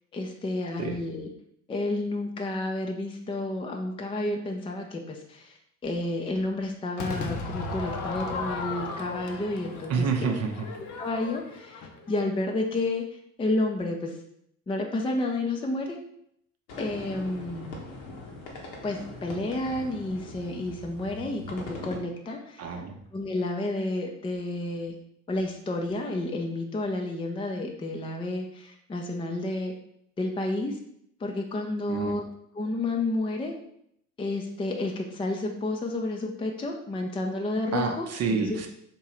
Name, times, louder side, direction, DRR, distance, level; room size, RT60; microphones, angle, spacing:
voice 1, 0.1-1.3 1.7-5.6 5.8-10.3 11.0-13.0 13.4-14.2 14.7-16.0 16.8-17.8 18.8-22.8 23.1-25.0 25.3-29.7 30.2-30.8 31.2-32.2 32.5-33.5 34.2-38.1 38.4-38.6, left 2 dB, 15° left, 2 dB, 0.5 m, -30 dB
Crowd / Fireworks, 7.0-12.2, left 3 dB, 45° left, 0.8 m, -35 dB
voice 2, 9.9-10.6 22.6-23.0 31.9-32.2 37.7-38.7, right 5 dB, 35° right, 4 dB, 0.7 m, -28 dB
sound 1, 16.7-22.0, left 2 dB, 65° left, 1.2 m, -41 dB
3.7 x 2.9 x 4.3 m, 0.72 s
hypercardioid pair, 65°, 43 cm